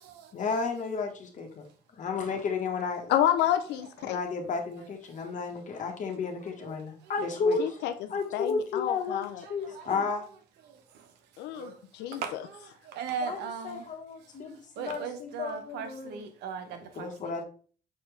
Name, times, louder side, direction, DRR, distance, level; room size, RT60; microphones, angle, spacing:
voice 1, 0.3-1.7 1.9-3.1 4.0-7.8 8.1-10.3 13.2-16.2 16.7-17.4, left 4 dB, 50° left, 1.4 m, -32 dB
voice 2, 3.1-4.2 7.6-9.4 11.4-12.4, left 11 dB, 80° left, 0.6 m, -29 dB
voice 3, 10.7-11.0 11.5-11.8 12.1-13.8 14.8-17.3, right 6 dB, 85° right, 1.1 m, -38 dB
6.5 x 4.4 x 3.3 m
cardioid pair, 110°, 17 cm